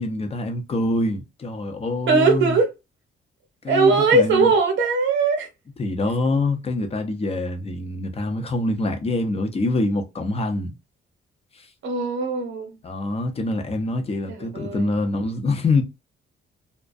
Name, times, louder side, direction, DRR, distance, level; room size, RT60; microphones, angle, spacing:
voice 1, 0.0-2.6 3.6-4.5 5.8-10.7 11.5-11.7 12.8-15.8, left 2 dB, 30° left, 0.6 m, -25 dB
voice 2, 2.1-2.7 3.7-5.5 11.8-12.7 14.3-15.0, right 3 dB, 70° right, 0.9 m, -20 dB
2.3 x 2.1 x 2.5 m
cardioid pair, 90°, 20 cm